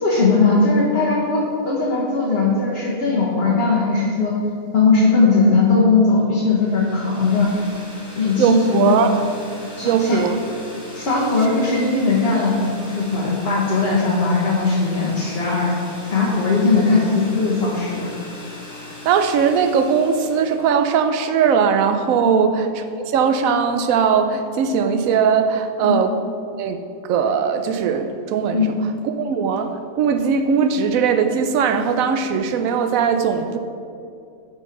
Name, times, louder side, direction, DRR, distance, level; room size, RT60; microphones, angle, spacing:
voice 1, 0.0-4.3 4.7-7.5 8.1-9.1 9.8-10.2 10.9-15.7 16.1-18.1 22.2-22.5 25.8-26.0 28.5-28.7, left 3 dB, 45° left, -7 dB, 1.3 m, -19 dB
sound 1, 6.4-20.9, left 2 dB, 5° right, 1.3 m, -39 dB
voice 2, 8.4-9.1 9.8-10.4 19.0-26.1 26.6-26.8 27.0-28.7 29.0-33.6, right 6 dB, 70° right, 8 dB, 0.9 m, -19 dB
5.9 x 4.5 x 5.9 m, 2.5 s
omnidirectional pair, 1.6 m